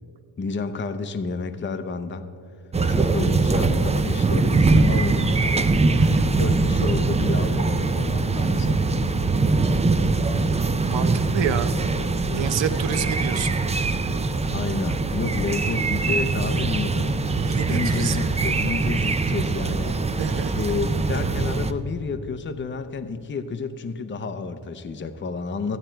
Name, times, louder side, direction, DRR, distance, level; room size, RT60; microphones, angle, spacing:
voice 1, 0.4-2.3 2.8-5.8 6.3-8.8 12.2-12.5 14.4-17.1 17.6-20.0 20.5-25.8, left 4 dB, 25° left, 10 dB, 0.6 m, -30 dB
sound 1, 2.7-21.7, right 3 dB, 15° right, 0.3 m, -22 dB
voice 2, 6.0-6.3 10.8-11.8 12.3-13.6 17.4-18.3 20.2-20.7, right 8 dB, 65° right, 10 dB, 0.9 m, -29 dB
14.5 x 8.9 x 4.5 m, 2.4 s
cardioid pair, 100°, 48 cm